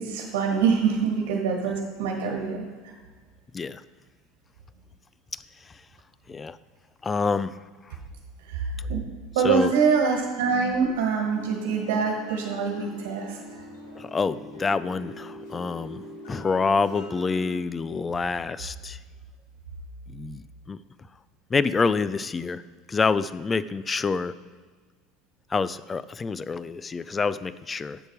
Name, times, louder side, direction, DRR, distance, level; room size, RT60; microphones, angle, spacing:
voice 1, 0.0-2.9 8.4-9.0 9.3-13.4, right 5 dB, 85° right, 1 dB, 1.5 m, -25 dB
voice 2, 5.3-5.8 6.3-6.6 7.0-7.6 7.9-8.0 9.4-9.7 14.0-19.0 20.1-20.8 21.5-22.6 22.9-24.3 25.5-28.0, left 4 dB, 20° left, 16 dB, 0.3 m, -27 dB
sound 1, 11.3-17.5, equal, 80° left, 2.6 m, -42 dB
8.1 x 6.7 x 4.6 m, 1.5 s
supercardioid pair, 120°, 0 cm